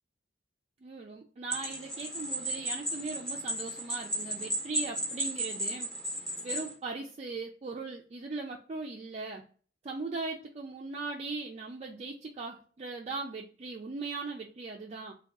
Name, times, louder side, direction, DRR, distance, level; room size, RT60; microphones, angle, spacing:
voice 1, 0.8-5.9 6.4-9.4 9.8-15.1, right 3 dB, 35° right, 0 dB, 0.4 m, -39 dB
sound 1, 1.5-6.7, right 1 dB, 5° left, 0.8 m, -35 dB
3.6 x 2.3 x 3.5 m, 0.41 s
head